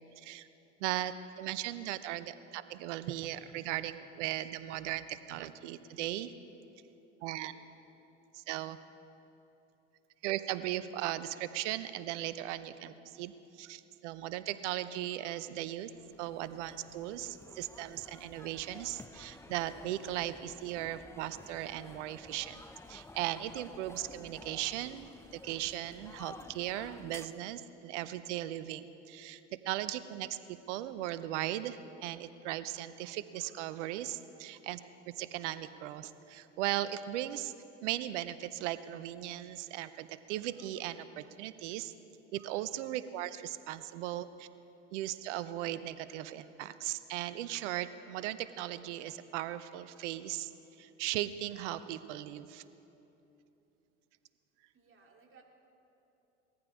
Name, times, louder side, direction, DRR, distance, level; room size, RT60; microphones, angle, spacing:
voice 1, 0.2-0.5 0.8-6.3 7.2-7.5 8.3-8.8 10.2-15.9 16.2-22.6 22.9-29.4 29.6-30.4 30.7-34.8 35.1-37.5 37.8-41.9 42.3-44.5 44.9-50.5 50.8-52.6, right 13 dB, 75° right, 14 dB, 0.7 m, -37 dB
voice 2, 7.4-7.7 54.7-55.4, right 5 dB, 35° right, 1 dB, 2.5 m, -61 dB
sound 1, 15.9-27.3, left 2 dB, 5° left, 0.5 m, -52 dB
19.5 x 14.5 x 3.7 m, 3.0 s
hypercardioid pair, 70°, 36 cm